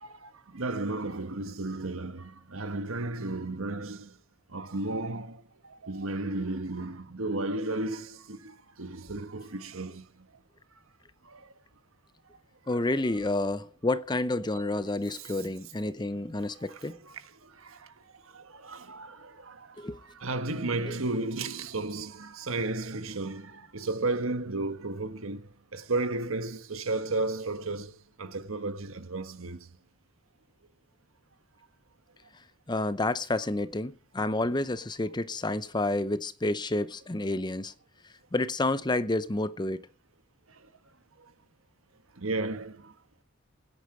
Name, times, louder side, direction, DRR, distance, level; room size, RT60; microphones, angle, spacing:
voice 1, 0.0-4.1 4.5-5.4 5.7-10.1 11.3-11.4 15.1-15.3 16.6-17.2 17.6-17.8 18.3-19.7 20.1-27.9 28.2-29.6 42.2-42.9, right 2 dB, 90° right, 1.4 m, -33 dB
voice 2, 12.7-17.0 19.8-20.0 20.9-21.0 32.7-37.7 38.3-39.9, left 2 dB, 20° left, 0.7 m, -29 dB
18.0 x 10.0 x 4.9 m
head